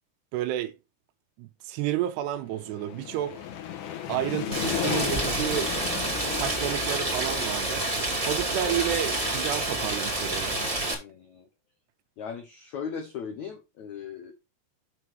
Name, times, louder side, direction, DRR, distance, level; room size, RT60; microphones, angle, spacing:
voice 1, 0.3-0.8 1.4-3.4 4.1-5.8 6.3-7.9 8.3-10.6, right 12 dB, 85° right, 2.7 m, -31 dB
sound 1, 2.4-9.1, left 11 dB, 65° left, 2.2 m, -35 dB
Rain, 4.5-10.9, right 2 dB, 20° right, 0.9 m, -28 dB
voice 2, 10.9-11.5 12.2-14.3, left 6 dB, 90° left, 1.6 m, -38 dB
7.1 x 6.0 x 4.6 m
omnidirectional pair, 5.0 m